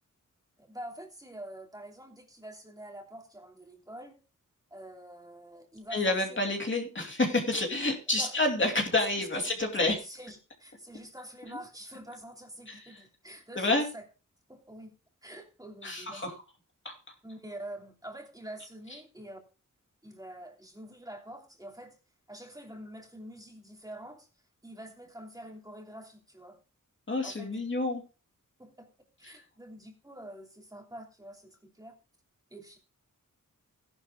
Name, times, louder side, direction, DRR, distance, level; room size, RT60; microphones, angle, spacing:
voice 1, 0.6-4.2 4.7-6.4 8.2-8.3 9.2-9.5 9.9-14.0 14.5-14.9 15.2-16.3 17.2-19.4 20.0-22.0 22.3-24.3 24.6-26.6 27.2-27.7 28.6-28.9 29.2-31.9 32.5-32.8, right 1 dB, 10° right, 1 dB, 2.9 m, -46 dB
voice 2, 5.9-10.0 12.7-13.0 13.5-13.9 15.8-16.3 16.8-16.9 27.1-28.0 29.2-29.4, left 2 dB, 35° left, 2 dB, 2.6 m, -29 dB
17.0 x 11.5 x 2.3 m, 0.32 s
wide cardioid pair, 120°, 32 cm